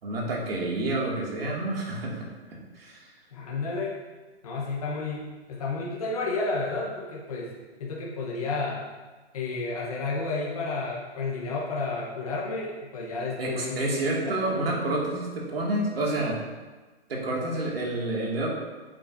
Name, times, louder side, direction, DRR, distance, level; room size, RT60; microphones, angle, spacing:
voice 1, 0.0-3.1 13.4-16.4 17.1-18.6, right 2 dB, 60° right, -3 dB, 2.3 m, -29 dB
voice 2, 3.3-3.9 4.4-7.5 7.8-8.8 9.3-14.6, left 3 dB, 35° left, -4 dB, 1.1 m, -31 dB
9.3 x 7.5 x 2.7 m, 1.3 s
hypercardioid pair, 180°, 34 cm